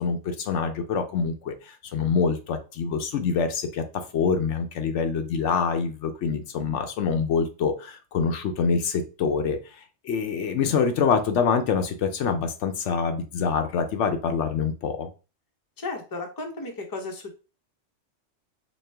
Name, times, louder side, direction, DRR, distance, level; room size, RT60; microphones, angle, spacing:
voice 1, 0.0-3.8 4.1-15.1, left 5 dB, 75° left, 6 dB, 0.9 m, -25 dB
voice 2, 15.8-17.3, left 3 dB, 20° left, 2 dB, 0.6 m, -34 dB
4.2 x 2.3 x 3.3 m, 0.32 s
omnidirectional pair, 1.3 m